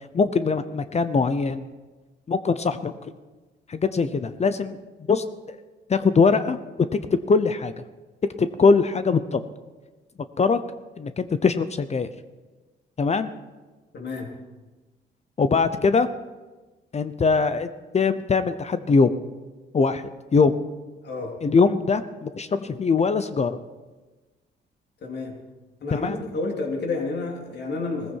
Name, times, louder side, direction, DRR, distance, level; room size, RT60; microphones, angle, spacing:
voice 1, 0.1-1.7 2.3-3.1 3.7-4.8 5.1-5.6 5.9-6.6 7.3-7.7 8.4-9.4 10.4-10.6 11.0-12.1 13.0-13.3 15.4-16.1 16.9-17.7 17.9-19.1 19.7-20.6 21.4-23.6 25.9-26.2, left 4 dB, 35° left, 12 dB, 0.8 m, -22 dB
voice 2, 13.9-14.4 21.0-21.4 25.0-25.4 25.8-28.2, left 3 dB, 60° left, 1 dB, 3.3 m, -30 dB
17.5 x 14.5 x 4.7 m, 1.2 s
cardioid pair, 90°, 20 cm